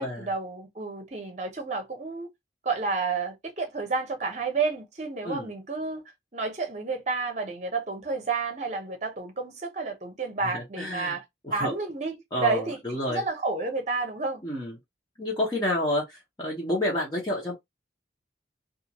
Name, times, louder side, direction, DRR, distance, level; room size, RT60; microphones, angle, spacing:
voice 1, 0.0-2.3 2.6-6.0 6.3-11.2 11.5-14.4, right 4 dB, 40° right, 0.8 m, -30 dB
voice 2, 10.5-11.2 11.4-11.7 12.3-13.2 14.4-14.7 15.2-17.5, left 1 dB, 25° left, 0.8 m, -29 dB
2.4 x 2.4 x 2.9 m
head